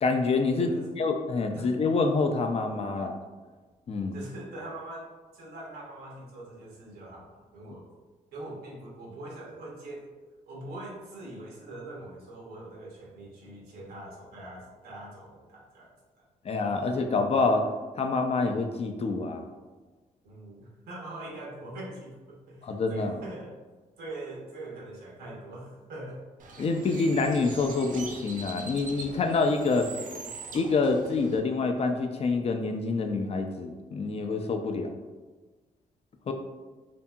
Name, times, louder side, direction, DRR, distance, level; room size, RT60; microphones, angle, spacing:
voice 1, 0.0-3.2 3.9-4.2 16.4-17.7 18.0-19.5 22.6-23.2 26.6-29.9 30.5-34.9 36.3-36.4, left 3 dB, 40° left, 5 dB, 0.4 m, -27 dB
voice 2, 0.6-0.9 1.5-1.7 4.1-7.8 8.3-10.1 10.5-16.2 20.2-23.5 24.0-26.2 30.2-30.3, right 1 dB, 85° right, -3 dB, 0.8 m, -43 dB
Bird, 26.4-31.4, right 4 dB, 60° right, 0.4 m, -43 dB
2.7 x 2.6 x 2.3 m, 1.3 s
supercardioid pair, 60°, 16 cm